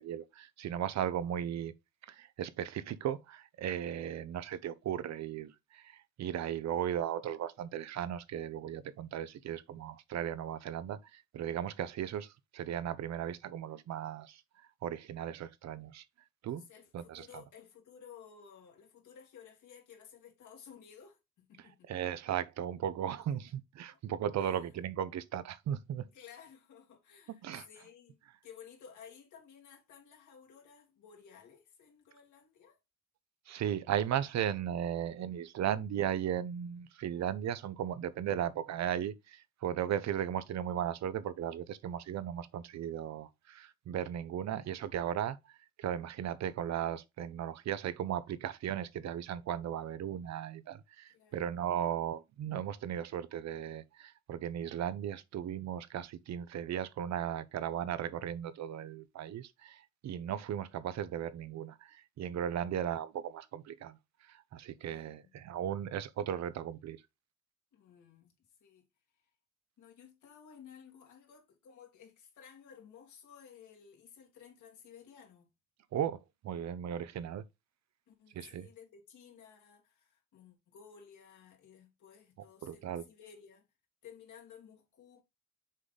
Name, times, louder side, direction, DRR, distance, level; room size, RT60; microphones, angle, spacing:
voice 1, 0.0-1.7 2.0-14.4 14.8-16.0 16.4-16.6 16.9-17.3 21.9-26.0 27.4-27.7 33.5-64.0 64.3-67.0 75.9-76.2 76.4-77.4 78.3-78.7 82.6-83.0, right 10 dB, 60° right, 0.7 m, -36 dB
voice 2, 16.5-21.9 23.3-23.6 23.9-24.0 24.4-24.7 26.1-28.2 28.4-32.8 38.4-38.5 51.1-51.4 64.8-65.3 67.7-68.8 69.8-75.5 78.1-83.7 84.0-85.2, left 7 dB, 75° left, 2.4 m, -56 dB
6.3 x 3.9 x 3.9 m
cardioid pair, 90°, 30 cm